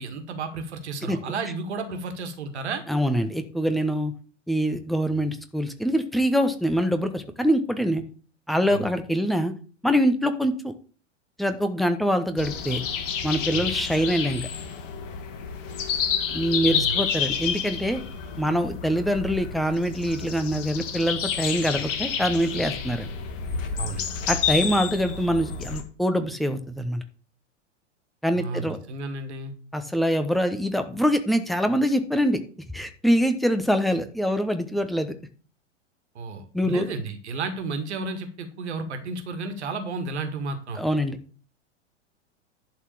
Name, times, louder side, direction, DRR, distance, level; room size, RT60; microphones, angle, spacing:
voice 1, 0.0-2.8 8.7-8.9 13.5-13.7 15.7-15.8 16.6-17.1 23.8-24.1 28.3-29.5 36.1-40.8, right 3 dB, 60° right, 7 dB, 1.8 m, -32 dB
voice 2, 2.9-4.1 4.5-8.0 8.5-9.5 9.8-10.7 11.4-12.8 13.2-14.5 16.3-18.0 18.4-23.1 24.3-27.0 28.2-28.8 29.7-32.4 32.7-35.1 36.5-36.9 40.8-41.2, equal, ahead, 8 dB, 0.8 m, -24 dB
sound 1, 12.4-25.8, left 7 dB, 45° left, 1.7 m, -29 dB
11.0 x 4.2 x 6.9 m, 0.40 s
figure-of-eight pair, 95°, 37 cm